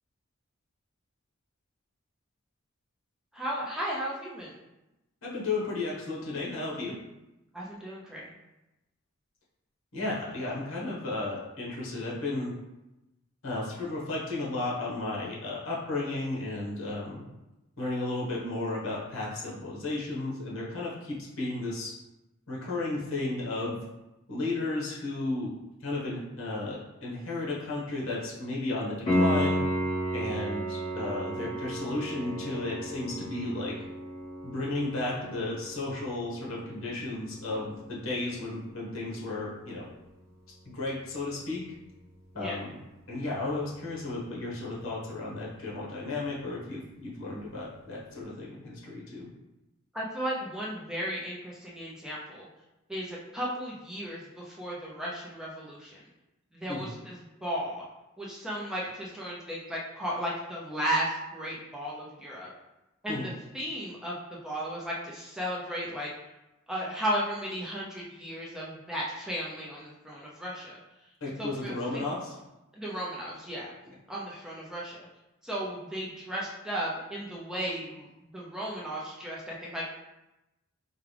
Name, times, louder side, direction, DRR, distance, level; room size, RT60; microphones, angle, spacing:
voice 1, 3.3-4.6 7.5-8.3 42.3-42.6 49.9-52.5 52.9-56.0 56.5-57.9 58.2-62.5 63.0-66.1 66.7-71.1 71.4-72.0 72.7-73.7 74.1-75.1 75.4-80.0, equal, 5° right, -5 dB, 0.6 m, -35 dB
voice 2, 5.2-7.0 9.9-12.5 13.4-17.3 17.8-21.9 22.5-23.8 24.3-25.5 25.8-29.6 30.1-33.8 34.4-39.9 40.6-41.6 42.3-42.7 43.1-49.3 56.7-56.9 63.1-63.2 71.2-72.3, left 2 dB, 75° left, -4 dB, 1.3 m, -34 dB
Piano, 29.1-39.7 43.0-43.1, equal, 35° left, 1.4 m, -33 dB
4.8 x 2.4 x 3.3 m, 0.96 s
head